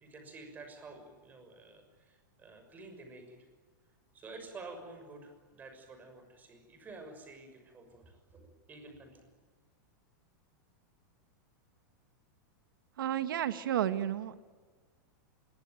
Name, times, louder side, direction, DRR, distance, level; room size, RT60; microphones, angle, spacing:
voice 1, 0.0-3.4 4.1-9.3, right 3 dB, 15° right, 6 dB, 6.2 m, -50 dB
voice 2, 13.0-14.4, right 11 dB, 90° right, 11 dB, 1.6 m, -32 dB
26.5 x 22.5 x 9.2 m, 1.5 s
supercardioid pair, 160°, 11 cm